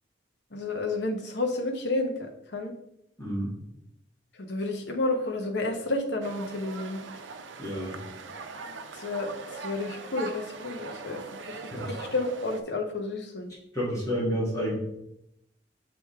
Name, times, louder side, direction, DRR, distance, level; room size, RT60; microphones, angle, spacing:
voice 1, 0.5-2.7 4.4-7.0 8.9-11.6 11.9-13.5, left 2 dB, 65° left, 4 dB, 0.9 m, -31 dB
voice 2, 3.2-3.6 7.6-8.0 11.7-11.9 13.7-14.7, equal, 15° left, -6 dB, 1.6 m, -29 dB
sound 1, 6.2-12.6, right 4 dB, 85° right, 0.6 m, -41 dB
6.1 x 4.8 x 3.5 m, 0.79 s
head